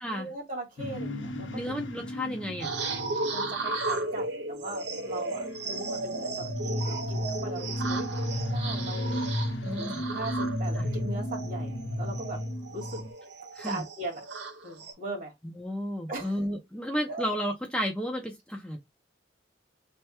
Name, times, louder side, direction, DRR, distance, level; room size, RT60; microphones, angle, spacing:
voice 1, 0.1-1.7 3.3-8.1 8.4-9.2 9.8-12.4 12.7-13.0 13.6-14.2 14.6-15.3 16.1-16.3 17.1-17.2, right 2 dB, 50° right, 1.7 m, -39 dB
sound 1, 0.8-4.3 4.9-13.1, left 1 dB, 85° left, 0.8 m, -34 dB
voice 2, 1.5-2.7 9.6-10.0 10.8-10.9 13.5-13.8 15.6-18.8, equal, 5° left, 0.6 m, -32 dB
sound 2, 2.6-14.9, right 3 dB, 65° right, 0.9 m, -35 dB
3.4 x 2.2 x 4.2 m
head